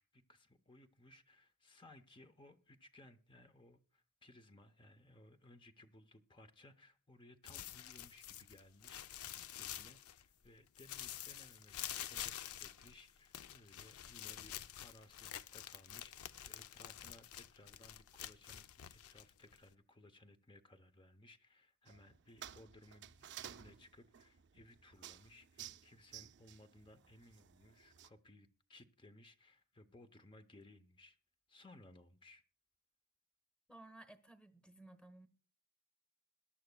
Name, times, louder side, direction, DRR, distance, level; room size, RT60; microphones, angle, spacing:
voice 1, 0.0-9.1 9.6-31.2 31.5-32.4, left 1 dB, 20° left, 0.6 m, -62 dB
sound 1, 7.4-10.4 10.7-19.7, left 11 dB, 70° left, 0.5 m, -48 dB
sound 2, 21.9-28.1, right 10 dB, 50° right, 0.5 m, -55 dB
voice 2, 33.7-35.3, right 2 dB, 5° left, 1.0 m, -57 dB
21.5 x 11.5 x 2.2 m
head